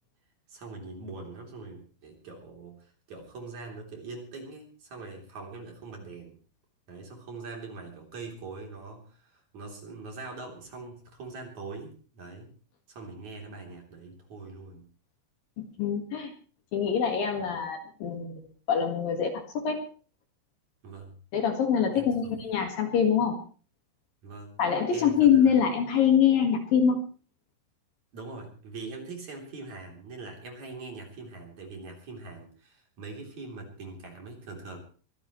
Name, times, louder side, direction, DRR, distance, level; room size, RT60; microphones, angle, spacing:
voice 1, 0.5-6.4 6.9-12.5 12.9-14.9 20.8-21.1 21.9-22.1 24.2-24.6 24.9-25.5 28.1-34.8, right 3 dB, 45° right, 1 dB, 4.3 m, -42 dB
voice 2, 15.6-16.3 16.7-19.9 21.3-23.4 24.6-27.0, left 7 dB, 60° left, 4 dB, 3.1 m, -25 dB
24.0 x 16.0 x 3.1 m, 0.39 s
omnidirectional pair, 5.2 m